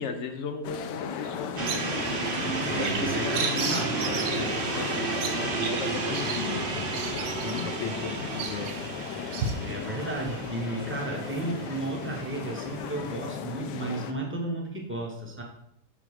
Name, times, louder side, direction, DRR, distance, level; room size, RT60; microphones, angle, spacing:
voice 1, 0.0-2.0 2.7-3.8 4.0-7.0 7.4-8.8, left 5 dB, 65° left, 6 dB, 0.7 m, -36 dB
sound 1, 0.6-14.1, left 8 dB, 85° left, 1.2 m, -37 dB
Bird vocalization bird call bird song, 1.2-9.5, right 5 dB, 80° right, 1.4 m, -36 dB
sound 2, 1.6-13.2, right 4 dB, 45° right, 0.8 m, -33 dB
voice 2, 2.7-4.0 9.6-15.4, right 2 dB, 10° right, -1 dB, 0.8 m, -33 dB
6.9 x 3.6 x 4.7 m, 0.75 s
omnidirectional pair, 1.8 m